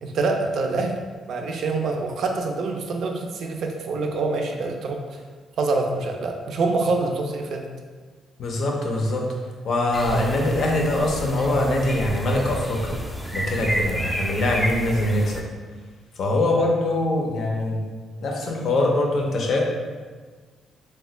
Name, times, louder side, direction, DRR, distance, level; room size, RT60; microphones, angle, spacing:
voice 1, 0.0-1.0 1.3-5.2 5.6-7.7, right 3 dB, 65° right, 3 dB, 0.4 m, -25 dB
voice 2, 8.4-9.3 9.6-13.0 13.3-15.4 16.2-17.8 18.2-19.6, left 1 dB, 65° left, 0 dB, 0.5 m, -23 dB
sound 1, 9.9-15.4, equal, ahead, 0.4 m, -31 dB
2.9 x 2.2 x 3.1 m, 1.5 s
cardioid pair, 90°, 0 cm